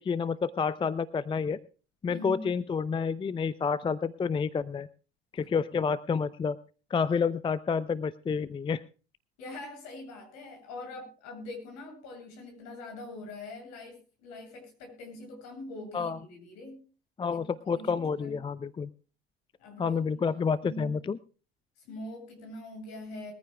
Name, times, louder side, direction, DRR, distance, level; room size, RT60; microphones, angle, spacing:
voice 1, 0.0-1.6 2.0-4.9 5.3-6.6 6.9-8.8 15.9-16.2 17.2-18.9 19.8-21.2, left 5 dB, 15° left, 16 dB, 0.5 m, -29 dB
voice 2, 2.1-2.5 9.4-16.8 17.3-18.4 19.6-20.9 21.8-23.3, left 1 dB, 55° left, 3 dB, 7.6 m, -43 dB
22.0 x 14.5 x 2.3 m, 0.36 s
figure-of-eight pair, 70°, 31 cm